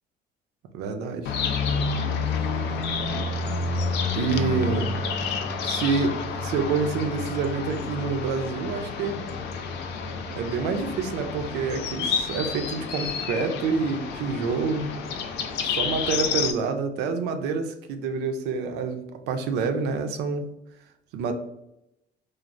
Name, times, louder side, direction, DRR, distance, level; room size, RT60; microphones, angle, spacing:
voice 1, 0.7-1.3 4.2-4.9 5.6-9.3 10.3-14.9 15.6-20.5 21.1-21.3, right 5 dB, 85° right, 7 dB, 0.4 m, -27 dB
sound 1, 1.2-16.5, left 4 dB, 80° left, 0.4 m, -29 dB
3.1 x 2.0 x 2.4 m, 0.84 s
cardioid pair, 110°, 17 cm